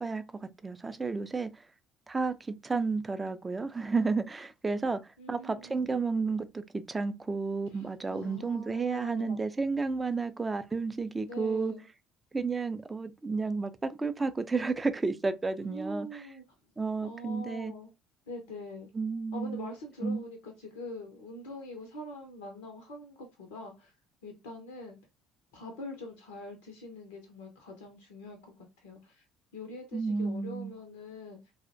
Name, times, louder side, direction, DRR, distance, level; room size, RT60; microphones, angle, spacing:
voice 1, 0.0-1.6 2.1-11.7 12.3-16.2 16.8-17.7 18.9-19.7 20.0-20.2 29.9-30.7, right 4 dB, 20° right, 0.3 m, -32 dB
voice 2, 5.2-5.9 7.7-9.4 11.2-11.8 15.7-16.4 17.0-17.9 18.3-18.9 19.3-23.9 24.2-25.0 25.5-29.2 29.5-31.4, left 1 dB, 70° left, 0.4 m, -44 dB
2.4 x 2.0 x 2.5 m
figure-of-eight pair, 50°, 0 cm